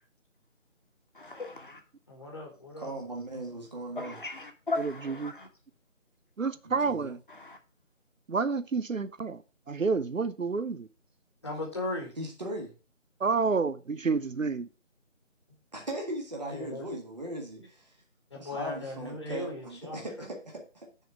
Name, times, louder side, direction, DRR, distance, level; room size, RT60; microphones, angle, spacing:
voice 1, 1.1-1.8 4.0-5.5 7.3-7.6, left 3 dB, 40° left, 1.3 m, -37 dB
voice 2, 2.1-2.9 11.4-12.1 16.5-16.8 18.3-20.0, left 2 dB, 20° left, 1.5 m, -37 dB
voice 3, 2.8-4.2 6.6-7.1 12.2-12.7 15.7-17.9 18.3-20.9, right 1 dB, 35° right, 1.7 m, -38 dB
voice 4, 4.8-5.3 6.4-7.2 8.3-9.4 9.7-10.9 13.2-14.7, right 4 dB, 80° right, 0.7 m, -29 dB
6.5 x 4.4 x 6.0 m
figure-of-eight pair, 165°, 39 cm